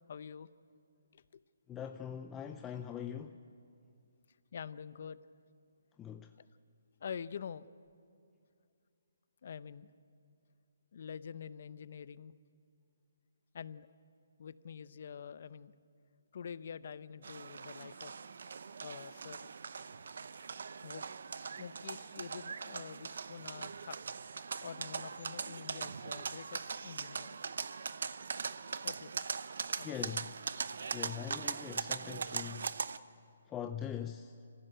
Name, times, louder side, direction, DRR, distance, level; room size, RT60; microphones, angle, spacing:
voice 1, 0.1-0.5 1.1-1.4 2.9-3.2 4.5-5.2 6.4-6.5 7.0-7.7 9.4-9.9 10.9-12.3 13.5-13.9 14.4-15.7 16.3-18.2 18.8-19.5 20.8-21.0 21.6-24.0 24.6-27.4 28.8-29.3 29.8-30.2, left 7 dB, 50° left, 0.7 m, -46 dB
voice 2, 1.7-3.4 6.0-6.3 29.8-30.3 30.9-32.8 33.5-34.3, left 9 dB, 10° left, 0.5 m, -42 dB
sound 1, 17.2-33.0, right 5 dB, 65° right, 0.8 m, -41 dB
25.5 x 15.5 x 9.2 m
hypercardioid pair, 160°, 0 cm